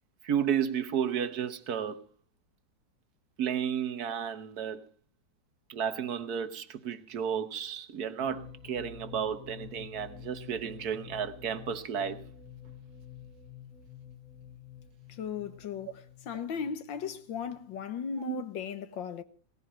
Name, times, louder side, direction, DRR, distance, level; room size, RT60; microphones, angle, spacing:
voice 1, 0.2-2.0 3.4-4.8 5.7-12.2 18.1-18.4, right 8 dB, 55° right, 1.5 m, -32 dB
sound 1, 8.2-17.9, left 7 dB, 45° left, 2.4 m, -49 dB
voice 2, 15.2-19.2, left 7 dB, 75° left, 1.9 m, -37 dB
18.0 x 15.0 x 4.4 m
omnidirectional pair, 2.1 m